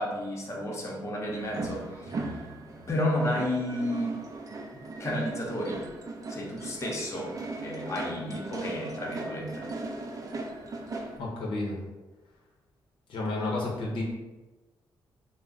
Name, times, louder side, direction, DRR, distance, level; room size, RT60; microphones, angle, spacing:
voice 1, 0.0-2.4 2.9-4.2 5.0-5.8 6.3-7.3 7.6-9.7, left 1 dB, 30° left, -2 dB, 0.7 m, -32 dB
sound 1, 1.3-11.2, right 2 dB, 40° right, 0.4 m, -38 dB
voice 2, 11.2-11.8 13.1-14.0, left 2 dB, 70° left, -3 dB, 0.7 m, -31 dB
2.3 x 2.0 x 3.7 m, 1.1 s
cardioid pair, 75°, 9 cm